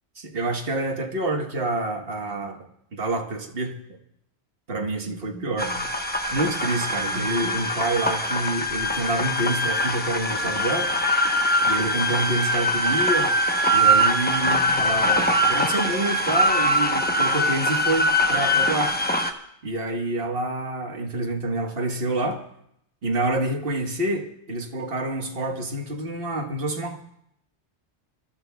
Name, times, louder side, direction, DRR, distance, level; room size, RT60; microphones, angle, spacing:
voice 1, 0.2-2.6 2.9-3.8 4.7-5.9 6.3-11.0 11.6-13.3 13.7-19.0 19.6-22.4 23.0-27.0, right 2 dB, 55° right, 3 dB, 1.5 m, -27 dB
sound 1, 5.6-19.3, equal, 10° left, 0.8 m, -22 dB
27.5 x 13.0 x 2.3 m, 0.74 s
omnidirectional pair, 1.2 m